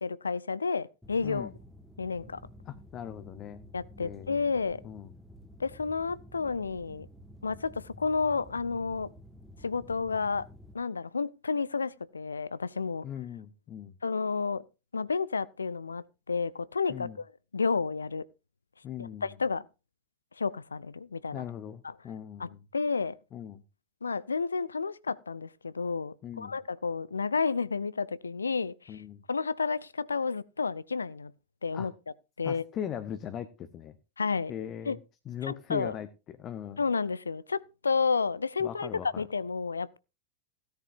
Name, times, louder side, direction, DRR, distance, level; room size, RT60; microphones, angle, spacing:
voice 1, 0.0-1.5 2.0-2.4 3.7-4.8 5.6-7.1 7.4-9.1 9.6-10.5 10.7-13.0 14.0-14.6 14.9-17.3 17.5-18.3 19.0-19.6 20.4-21.4 21.8-21.9 22.4-23.2 24.0-29.0 29.3-31.3 31.6-31.9 32.4-32.6 34.2-34.5 34.8-35.0 35.4-35.9 36.8-40.0, left 5 dB, 75° left, 0.5 m, -31 dB
sound 1, 1.0-10.7, equal, 5° left, 1.5 m, -51 dB
voice 2, 1.2-1.5 2.7-3.6 4.0-4.4 4.8-5.1 13.0-14.0 16.9-17.2 18.8-19.3 21.3-22.6 23.3-23.6 26.2-26.6 28.9-29.2 31.7-31.9 32.4-34.0 34.5-35.0 35.3-36.1 36.4-36.8 38.6-39.1, left 9 dB, 30° left, 0.8 m, -39 dB
16.5 x 10.5 x 2.5 m
figure-of-eight pair, 90°, 0 cm